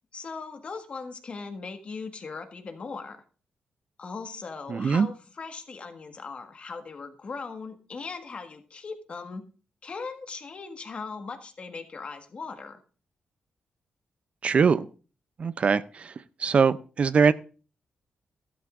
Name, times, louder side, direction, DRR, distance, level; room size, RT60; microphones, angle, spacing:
voice 1, 0.1-3.2 4.0-9.4 9.8-12.8, left 4 dB, 45° left, 6 dB, 1.6 m, -39 dB
voice 2, 4.7-5.1 14.4-14.9 15.4-15.8 16.4-17.3, right 5 dB, 45° right, 15 dB, 0.5 m, -21 dB
13.5 x 12.0 x 2.5 m, 0.36 s
cardioid pair, 95°, 3 cm